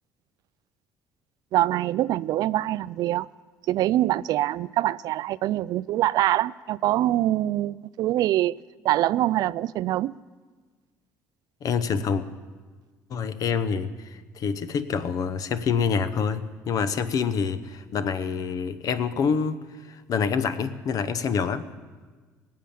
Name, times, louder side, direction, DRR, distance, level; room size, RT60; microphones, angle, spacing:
voice 1, 1.5-3.3 3.7-8.5 8.8-10.1, right 14 dB, 65° right, 0.3 m, -24 dB
voice 2, 11.6-12.2 13.1-19.6 19.9-21.7, left 6 dB, 60° left, 0.9 m, -26 dB
18.5 x 7.4 x 8.4 m
supercardioid pair, 75°, 7 cm